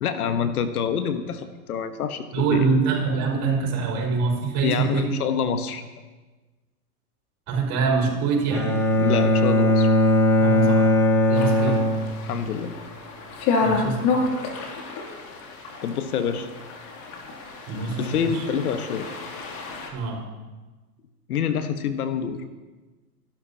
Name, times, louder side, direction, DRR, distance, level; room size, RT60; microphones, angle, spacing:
voice 1, 0.0-2.7 4.6-5.8 9.0-9.9 11.7-11.8 12.2-12.7 15.8-16.5 18.0-19.1 21.3-22.4, left 7 dB, 65° left, 9 dB, 1.3 m, -26 dB
voice 2, 2.3-5.1 7.5-8.7 10.4-10.9 11.3-11.9 13.6-14.0 17.7-18.2 19.9-20.2, right 5 dB, 35° right, -1 dB, 5.4 m, -24 dB
Bowed string instrument, 8.5-12.6, left 1 dB, 5° left, 2.5 m, -19 dB
sound 1, 11.3-19.9, left 4 dB, 45° left, 2.9 m, -30 dB
28.5 x 12.0 x 2.9 m, 1.2 s
hypercardioid pair, 105°, 48 cm